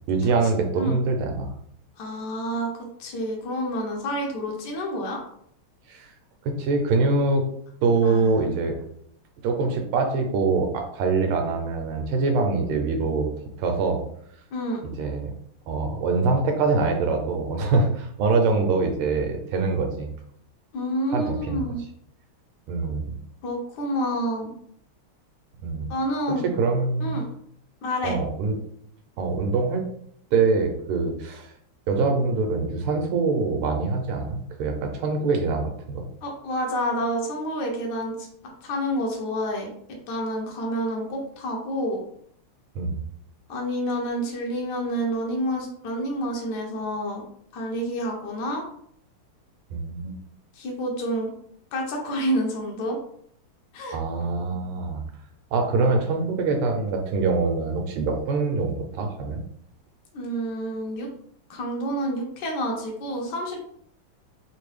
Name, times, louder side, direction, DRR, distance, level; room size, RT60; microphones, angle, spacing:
voice 1, 0.1-1.5 5.9-6.1 6.4-7.4 7.8-8.8 9.4-13.3 13.6-14.0 15.0-15.3 15.7-20.1 21.1-21.6 22.7-23.2 25.6-25.8 26.4-27.2 28.0-28.6 29.2-29.9 30.3-31.5 31.9-36.0 42.7-43.0 49.7-50.2 53.9-55.0 55.5-59.4, right 4 dB, 85° right, 4 dB, 1.5 m, -24 dB
voice 2, 2.0-2.7 3.0-5.2 8.0-8.6 14.5-14.8 20.7-21.8 23.4-24.5 25.9-26.4 27.0-27.3 27.8-28.1 36.2-38.3 38.6-42.0 43.5-47.2 47.5-48.6 50.6-51.3 51.7-53.0 53.7-54.0 60.1-61.1 61.5-63.6, equal, 70° left, 0 dB, 1.1 m, -28 dB
3.6 x 2.6 x 3.2 m, 0.68 s
omnidirectional pair, 2.4 m